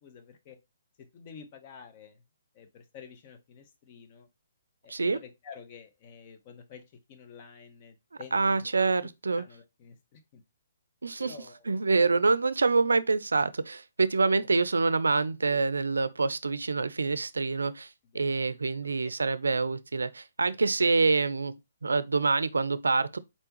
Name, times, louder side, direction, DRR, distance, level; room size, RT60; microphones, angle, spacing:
voice 1, 0.0-0.6 1.0-2.2 2.5-4.3 4.8-6.8 7.1-8.7 9.4-10.4 11.2-11.8 12.7-13.0 18.1-18.5 18.8-18.9, left 6 dB, 35° left, 0.9 m, -50 dB
voice 2, 4.9-5.2 8.3-9.4 11.0-11.3 11.7-17.9 18.1-21.5 21.8-23.2, right 4 dB, 85° right, 0.4 m, -26 dB
4.3 x 3.4 x 2.9 m
hypercardioid pair, 140°, 0 cm